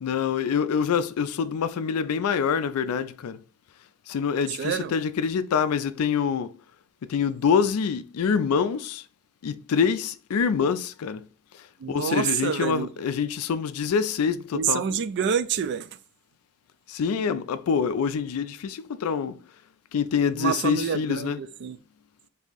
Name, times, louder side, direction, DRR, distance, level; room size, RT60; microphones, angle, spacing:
voice 1, 0.0-3.4 4.1-6.5 7.1-9.0 9.4-11.3 11.9-14.8 16.9-19.4 19.9-21.4, left 6 dB, 75° left, 0.4 m, -25 dB
voice 2, 4.6-4.9 11.8-12.9 14.5-15.9 20.3-21.8, right 7 dB, 50° right, 0.3 m, -27 dB
3.5 x 2.7 x 3.9 m
head